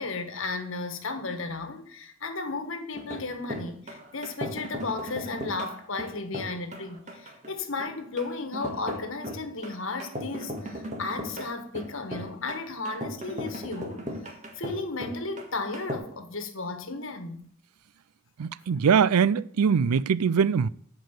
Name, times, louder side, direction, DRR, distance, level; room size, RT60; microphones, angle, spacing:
voice 1, 0.0-14.0 14.5-17.5, left 3 dB, 60° left, 1.4 m, -34 dB
sound 1, 2.9-15.9, equal, 30° right, 1.7 m, -37 dB
voice 2, 18.4-20.7, right 6 dB, 90° right, 0.4 m, -22 dB
12.0 x 4.9 x 8.1 m
head